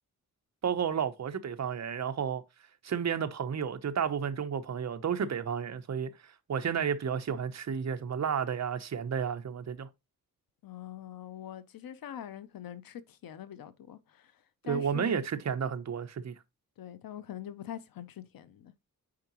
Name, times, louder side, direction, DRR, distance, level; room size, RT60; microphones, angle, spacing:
voice 1, 0.6-2.4 2.8-9.9 14.6-16.3, right 7 dB, 50° right, 0.8 m, -32 dB
voice 2, 10.6-15.2 16.8-18.7, left 10 dB, 85° left, 0.7 m, -44 dB
8.6 x 4.7 x 3.0 m
wide cardioid pair, 125°, 34 cm